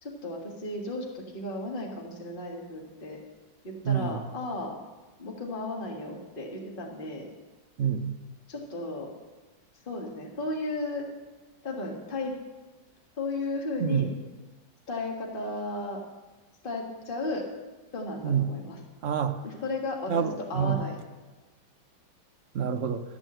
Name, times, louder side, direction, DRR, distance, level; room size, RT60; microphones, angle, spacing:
voice 1, 0.0-3.2 3.6-4.8 5.2-7.3 8.5-9.1 9.8-11.0 11.6-12.3 13.2-14.1 14.9-16.0 16.6-17.4 17.9-18.8 19.4-20.2 20.5-21.0, left 2 dB, 30° left, 0 dB, 1.7 m, -34 dB
voice 2, 3.8-4.3 7.8-8.2 13.8-14.1 18.2-18.4 19.0-19.4 20.1-20.8 22.5-23.0, right 8 dB, 55° right, 7 dB, 0.9 m, -27 dB
13.0 x 6.3 x 7.7 m, 1.2 s
omnidirectional pair, 2.0 m